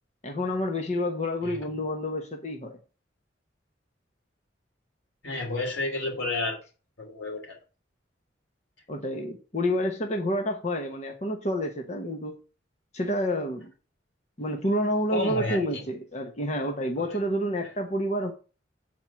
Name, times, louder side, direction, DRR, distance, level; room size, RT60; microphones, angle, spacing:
voice 1, 0.2-2.8 8.9-12.3 12.9-13.7 14.4-18.3, equal, 40° left, 1.0 m, -29 dB
voice 2, 5.2-6.6 7.0-7.6 15.1-15.6, left 3 dB, 90° left, 3.1 m, -30 dB
7.8 x 4.4 x 6.0 m
head